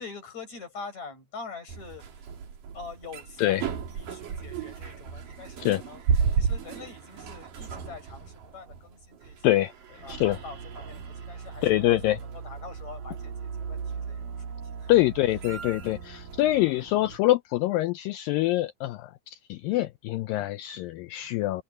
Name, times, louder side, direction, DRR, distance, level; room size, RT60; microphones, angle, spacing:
voice 1, 0.0-2.3 2.7-6.0 6.3-9.7 10.0-14.5 14.8-15.0, left 4 dB, 45° left, 8.4 m, -44 dB
sound 1, 1.7-17.2, right 6 dB, 60° right, 4.3 m, -34 dB
voice 2, 11.6-12.2 14.9-21.6, left 16 dB, 80° left, 2.0 m, -25 dB
open air
omnidirectional pair, 4.6 m